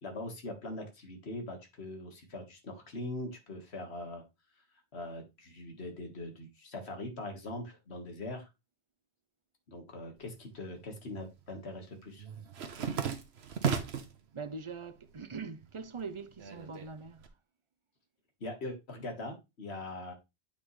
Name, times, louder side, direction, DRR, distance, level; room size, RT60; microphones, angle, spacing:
voice 1, 0.0-4.2 4.9-8.5 9.7-12.3 18.4-20.1, left 2 dB, 90° left, 1.9 m, -42 dB
sound 1, 10.3-11.1 11.4-14.2 14.6-15.3 15.6-17.3, right 7 dB, 90° right, 1.2 m, -36 dB
voice 2, 14.3-17.3, right 5 dB, 40° right, 0.5 m, -42 dB
8.8 x 5.3 x 3.2 m
omnidirectional pair, 1.1 m